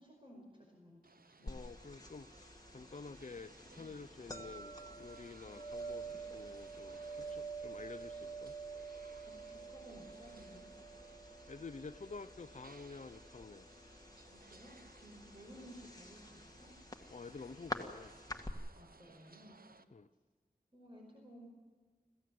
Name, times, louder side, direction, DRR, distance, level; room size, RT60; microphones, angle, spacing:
voice 1, 0.0-1.6 9.2-10.7 14.3-14.7 15.0-16.7 18.7-19.6 20.7-21.5, equal, 35° right, -2 dB, 5.2 m, -56 dB
sound 1, 1.0-19.8, right 4 dB, 70° right, 1.0 m, -63 dB
voice 2, 1.4-8.5 11.5-13.7 17.1-18.1 19.9-20.1, left 4 dB, 50° left, 11 dB, 0.8 m, -50 dB
sound 2, 1.5-18.5, right 2 dB, 25° left, 1.9 m, -48 dB
26.0 x 15.5 x 7.8 m, 1.4 s
wide cardioid pair, 55°, 16 cm